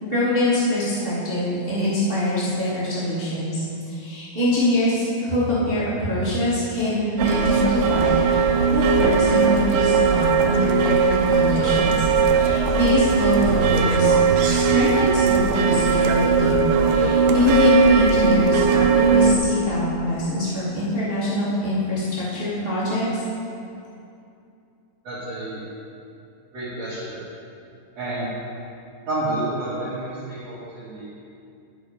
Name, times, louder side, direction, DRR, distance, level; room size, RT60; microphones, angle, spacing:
voice 1, 0.0-12.1 12.3-23.1, left 1 dB, 30° right, -10 dB, 1.0 m, -24 dB
sound 1, 7.2-19.4, right 5 dB, 80° right, 1.9 m, -19 dB
voice 2, 25.0-25.6 26.5-27.2 28.0-28.3 29.1-31.1, right 1 dB, 45° right, -12 dB, 3.0 m, -29 dB
12.0 x 6.2 x 5.0 m, 2.6 s
omnidirectional pair, 4.5 m